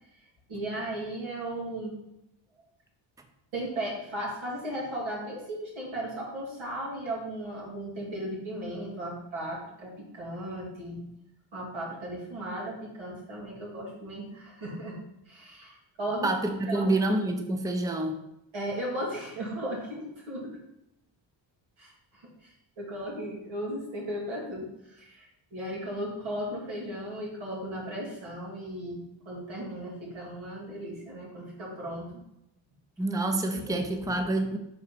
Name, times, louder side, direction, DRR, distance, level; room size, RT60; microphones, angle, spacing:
voice 1, 0.5-1.9 3.5-11.1 11.5-15.0 15.3-16.3 16.7-16.9 18.5-20.6 21.8-32.1 33.5-34.1, right 1 dB, 85° right, -4 dB, 2.7 m, -36 dB
voice 2, 16.2-18.2 33.0-34.6, right 2 dB, 10° right, 5 dB, 0.7 m, -27 dB
4.9 x 4.3 x 5.9 m, 0.84 s
cardioid pair, 95°, 46 cm